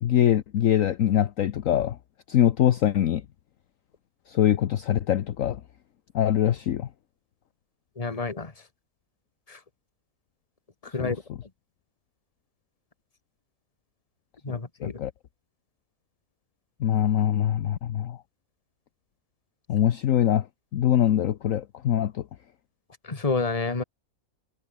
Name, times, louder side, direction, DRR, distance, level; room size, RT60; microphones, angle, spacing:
voice 1, 0.0-2.0 2.3-3.2 4.3-5.6 6.1-6.9 11.0-11.4 14.8-15.1 16.8-18.2 19.7-20.4 20.7-22.2, left 11 dB, 60° left, 1.1 m, -23 dB
voice 2, 8.0-8.5 9.5-9.6 10.9-11.2 14.4-14.9 23.1-23.8, left 3 dB, 25° left, 1.8 m, -28 dB
omnidirectional pair, 1.7 m